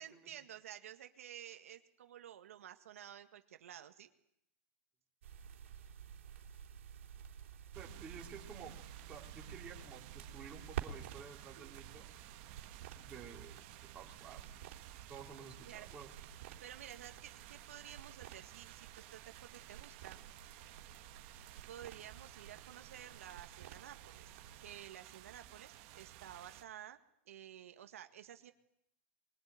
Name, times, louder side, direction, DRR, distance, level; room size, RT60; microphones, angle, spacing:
voice 1, 0.0-4.1 15.7-15.9 16.6-20.3 21.6-27.0 27.3-28.5, right 11 dB, 85° right, 7 dB, 1.9 m, -52 dB
sound 1, 5.2-24.8, right 9 dB, 65° right, 3.4 m, -52 dB
voice 2, 7.7-8.8 9.1-12.1 13.0-14.6 15.1-16.1, right 6 dB, 15° right, 0 dB, 3.3 m, -52 dB
sound 2, 7.7-26.6, right 13 dB, 35° right, 1.6 m, -55 dB
22.5 x 21.0 x 9.5 m, 0.78 s
supercardioid pair, 170°, 7 cm